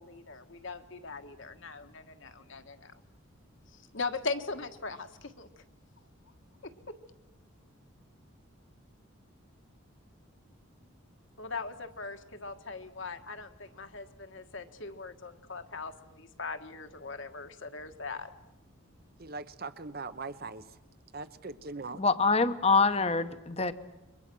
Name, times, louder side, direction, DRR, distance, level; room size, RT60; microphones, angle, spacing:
voice 1, 0.0-3.0 3.7-5.5 6.6-6.7 11.4-18.3, left 4 dB, 60° left, 7 dB, 1.6 m, -40 dB
voice 2, 19.2-20.6 21.1-22.0, right 3 dB, 45° right, 13 dB, 1.1 m, -40 dB
voice 3, 22.0-23.7, left 4 dB, 30° left, 11 dB, 1.0 m, -25 dB
29.5 x 23.5 x 6.3 m, 0.96 s
head